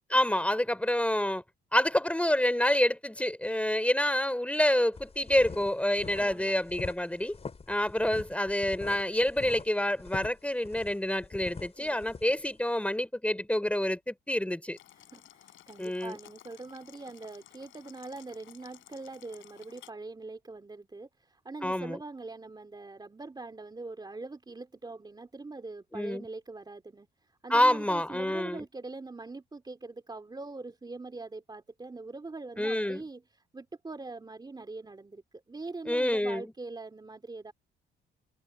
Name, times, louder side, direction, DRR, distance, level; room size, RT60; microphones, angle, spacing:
voice 1, 0.1-1.4 1.7-7.4 7.7-14.8 15.8-16.2 21.6-22.0 25.9-26.3 27.5-28.6 32.6-33.0 35.9-36.5, left 1 dB, 5° left, 3.7 m, -27 dB
sound 1, 4.9-12.6, left 4 dB, 30° left, 3.9 m, -44 dB
voice 2, 6.2-6.5 11.8-12.0 15.1-27.1 27.4-33.2 33.5-35.2 35.5-37.5, right 3 dB, 20° right, 2.9 m, -43 dB
Boiling, 14.8-19.9, left 14 dB, 85° left, 7.6 m, -55 dB
cardioid pair, 90°, 20 cm